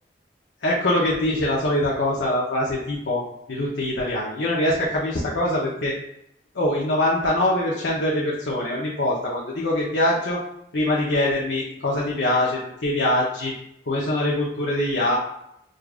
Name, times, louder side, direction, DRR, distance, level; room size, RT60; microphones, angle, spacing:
voice 1, 0.6-3.2 3.5-5.9 6.6-10.4 10.7-13.5 13.9-15.2, left 1 dB, 75° left, -4 dB, 0.7 m, -23 dB
6.3 x 2.4 x 2.3 m, 0.78 s
head